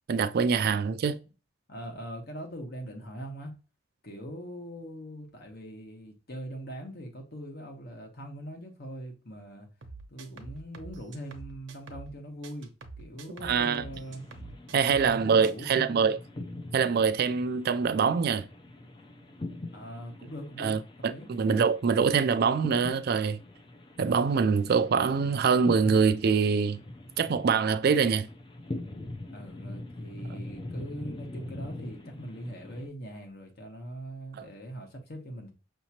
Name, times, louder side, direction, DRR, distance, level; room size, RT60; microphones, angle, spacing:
voice 1, 0.1-1.2 13.4-13.8 14.7-16.2 16.7-18.4 20.6-23.4 24.0-26.8 27.2-28.3 34.4-34.5, right 6 dB, 55° right, 0.3 m, -24 dB
voice 2, 1.7-3.5 4.0-9.7 10.1-12.7 13.0-14.3 14.7-16.1 19.7-20.8 21.1-21.3 29.3-35.5, equal, 55° left, 1.2 m, -41 dB
sound 1, 9.8-12.2 12.4-15.2 15.4-15.7, right 3 dB, 70° right, 0.8 m, -46 dB
sound 2, 13.6-32.9, left 1 dB, 25° left, 0.5 m, -43 dB
5.9 x 2.9 x 2.8 m
head